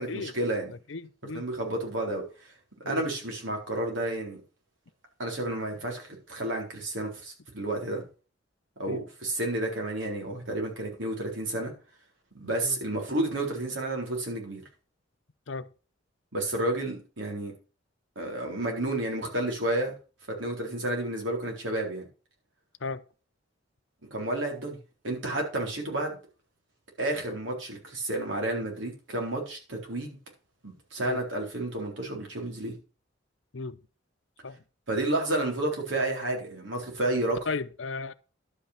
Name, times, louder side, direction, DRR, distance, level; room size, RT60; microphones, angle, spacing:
voice 1, 0.0-0.7 1.3-2.2 2.9-4.4 5.2-8.0 8.8-11.7 12.3-14.6 16.3-17.5 18.2-19.9 20.4-22.1 24.1-24.8 25.0-26.2 27.0-30.2 30.6-32.8 34.9-37.4, right 1 dB, 75° right, 3.9 m, -31 dB
voice 2, 0.9-1.4 2.8-3.0 8.9-9.0 12.6-12.8 15.5-15.7 22.8-23.0 31.0-31.2 33.5-33.8 34.4-34.6 37.5-38.1, left 4 dB, 75° left, 0.7 m, -35 dB
11.5 x 5.8 x 5.8 m
head